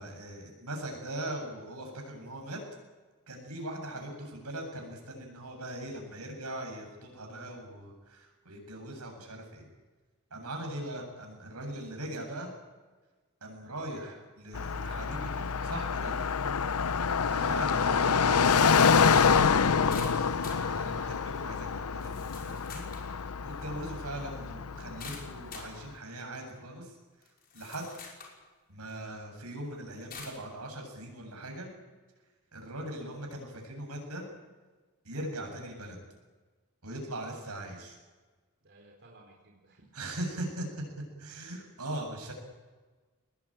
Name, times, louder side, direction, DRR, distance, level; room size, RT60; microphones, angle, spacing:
voice 1, 0.0-2.6 3.3-9.7 10.3-12.5 13.4-16.1 17.2-27.0 27.5-27.8 28.7-31.7 32.5-34.2 35.0-36.0 36.8-38.0 39.9-40.7 41.2-42.3, right 1 dB, 90° right, 2 dB, 7.9 m, -40 dB
Car passing by, 14.5-25.7, left 6 dB, 85° left, 0.8 m, -27 dB
sound 1, 19.9-20.7 21.4-21.5 22.0-23.1 25.0-25.7 26.5-26.6 27.2-28.4 28.9-29.0 30.1-30.4, left 5 dB, 45° left, 5.7 m, -46 dB
voice 2, 38.6-39.9, right 2 dB, 55° right, 0 dB, 4.2 m, -58 dB
23.0 x 20.5 x 9.0 m, 1.3 s
head